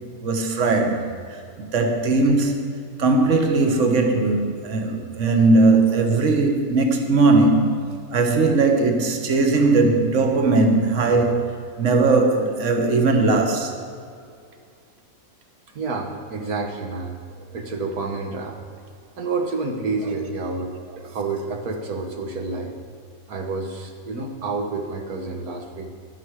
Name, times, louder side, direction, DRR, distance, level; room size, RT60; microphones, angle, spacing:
voice 1, 0.2-1.1 1.6-2.6 3.0-7.7 8.1-11.5 11.8-13.8, right 3 dB, 55° right, 4 dB, 1.6 m, -19 dB
voice 2, 15.7-17.2 17.5-18.6 19.2-22.7 23.3-25.9, right 3 dB, 80° right, 3 dB, 1.7 m, -29 dB
16.0 x 12.5 x 4.8 m, 2.3 s
omnidirectional pair, 1.6 m